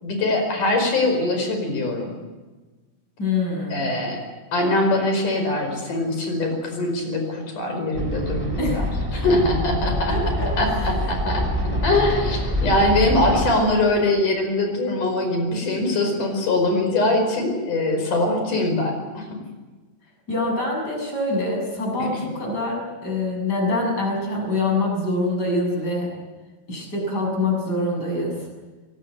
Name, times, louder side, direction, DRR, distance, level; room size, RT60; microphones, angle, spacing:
voice 1, 0.0-2.1 3.7-4.2 4.5-10.2 10.6-19.4 22.0-22.1, left 2 dB, 70° left, 4 dB, 6.5 m, -22 dB
voice 2, 3.2-3.9 8.6-8.8 9.8-10.9 11.6-11.8 13.5-13.8 20.3-26.1 26.7-28.4, left 2 dB, 30° left, 0 dB, 7.6 m, -25 dB
sound 1, 7.9-13.5, left 1 dB, 5° right, 3.3 m, -25 dB
24.0 x 19.0 x 9.3 m, 1.3 s
omnidirectional pair, 3.7 m